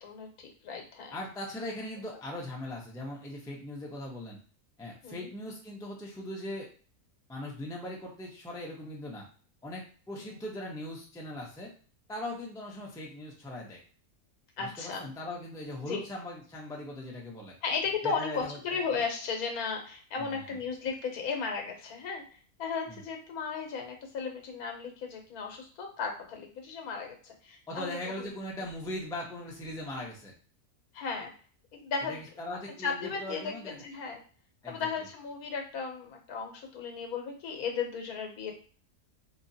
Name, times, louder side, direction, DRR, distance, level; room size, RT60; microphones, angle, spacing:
voice 1, 0.0-1.2 2.1-2.2 5.0-5.3 10.1-10.2 14.6-15.1 15.8-16.0 17.6-22.2 22.6-28.3 30.9-31.3 31.8-32.2 32.8-34.2 34.7-38.5, left 5 dB, 75° left, 3 dB, 1.2 m, -35 dB
voice 2, 1.1-4.4 4.8-6.7 7.3-9.3 9.6-11.7 12.1-13.8 14.6-17.5 18.0-18.6 20.2-20.4 22.9-23.0 27.7-30.3 32.0-33.8 34.6-34.9, left 1 dB, 5° left, -2 dB, 0.3 m, -40 dB
3.6 x 2.8 x 2.7 m, 0.42 s
omnidirectional pair, 1.6 m